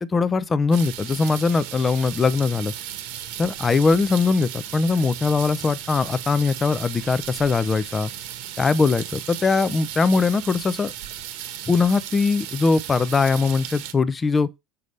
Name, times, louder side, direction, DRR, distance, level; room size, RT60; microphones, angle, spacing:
voice 1, 0.0-2.7 3.4-8.1 8.6-10.9 11.7-14.5, left 4 dB, 15° left, 0.5 m, -21 dB
sound 1, 0.7-13.9, right 11 dB, 65° right, 1.2 m, -36 dB
6.8 x 5.2 x 3.2 m
cardioid pair, 160°, 0 cm